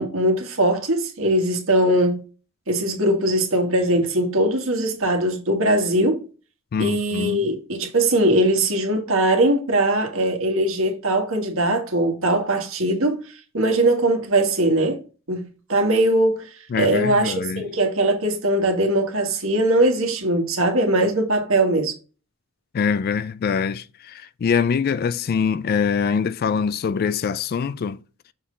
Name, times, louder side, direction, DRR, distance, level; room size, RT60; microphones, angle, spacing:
voice 1, 0.0-2.2 2.7-6.3 6.8-15.0 15.3-16.5 16.7-21.9, right 1 dB, 65° right, 1.5 m, -21 dB
voice 2, 6.7-7.5 16.7-17.7 22.7-28.0, left 6 dB, 45° left, 0.3 m, -24 dB
6.5 x 3.8 x 3.8 m
head